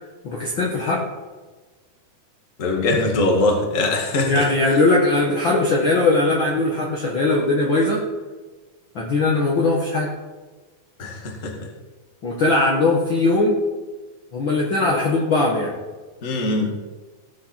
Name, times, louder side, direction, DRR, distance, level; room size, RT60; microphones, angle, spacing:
voice 1, 0.2-1.1 4.3-8.1 9.0-10.1 12.2-13.6 14.3-15.7, left 2 dB, 45° left, -3 dB, 1.8 m, -20 dB
voice 2, 2.6-4.8 11.0-11.7 16.2-16.7, left 2 dB, 30° left, 1 dB, 1.8 m, -22 dB
18.0 x 7.5 x 4.4 m, 1.3 s
omnidirectional pair, 3.7 m